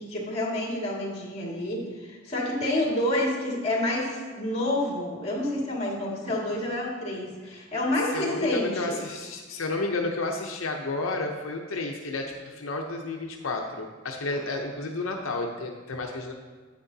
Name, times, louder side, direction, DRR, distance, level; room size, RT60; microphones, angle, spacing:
voice 1, 0.0-9.0, left 1 dB, 30° left, -3 dB, 2.0 m, -28 dB
voice 2, 8.1-16.3, left 2 dB, 80° left, 1 dB, 0.7 m, -31 dB
9.7 x 8.3 x 2.7 m, 1.4 s
head